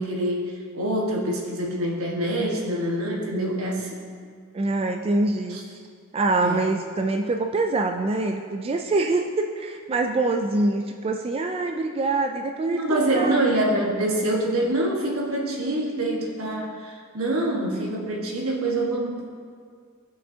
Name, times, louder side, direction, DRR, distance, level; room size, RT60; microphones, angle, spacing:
voice 1, 0.0-4.0 5.5-5.6 6.4-6.6 12.7-19.2, right 1 dB, 75° right, -2 dB, 1.4 m, -25 dB
voice 2, 4.5-5.6 6.1-13.6, right 2 dB, 25° right, 4 dB, 0.3 m, -25 dB
14.5 x 5.8 x 2.8 m, 2.1 s
head